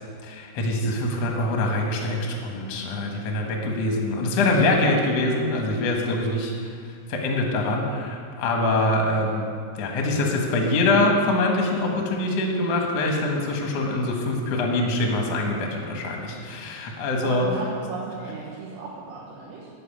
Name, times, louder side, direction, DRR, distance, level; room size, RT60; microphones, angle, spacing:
voice 1, 0.2-6.7 7.1-9.4 9.7-17.4, left 2 dB, 65° left, 1 dB, 1.6 m, -24 dB
voice 2, 17.2-19.7, right 4 dB, 85° right, -5 dB, 3.8 m, -34 dB
13.0 x 5.3 x 8.5 m, 2.2 s
omnidirectional pair, 5.1 m